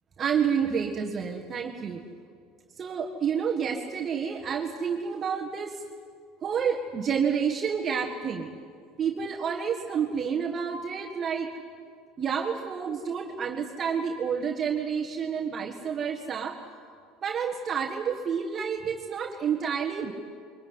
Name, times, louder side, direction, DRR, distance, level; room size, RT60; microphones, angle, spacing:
voice 1, 0.2-2.0 2.8-5.8 6.4-8.5 9.0-11.5 12.2-16.6 17.2-20.1, right 7 dB, 30° right, 1 dB, 1.6 m, -29 dB
23.0 x 21.5 x 9.6 m, 2.3 s
cardioid pair, 130°, 0 cm